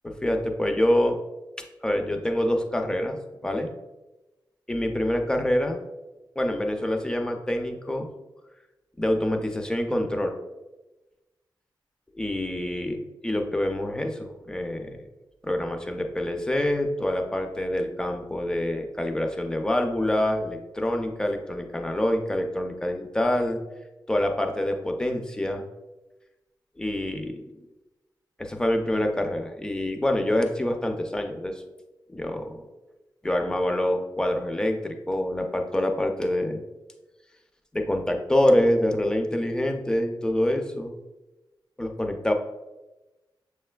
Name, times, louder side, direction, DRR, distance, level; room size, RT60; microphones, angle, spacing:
voice 1, 0.0-1.2 1.8-3.2 3.4-3.7 4.7-5.8 6.4-8.1 9.0-10.3 12.1-15.1 15.4-23.6 24.1-25.6 26.8-27.4 28.4-31.5 32.1-32.7 33.2-36.6 37.7-40.9 41.8-42.3, left 1 dB, 10° left, 4 dB, 0.4 m, -26 dB
6.9 x 3.2 x 2.2 m, 1.1 s
wide cardioid pair, 175°, 8 cm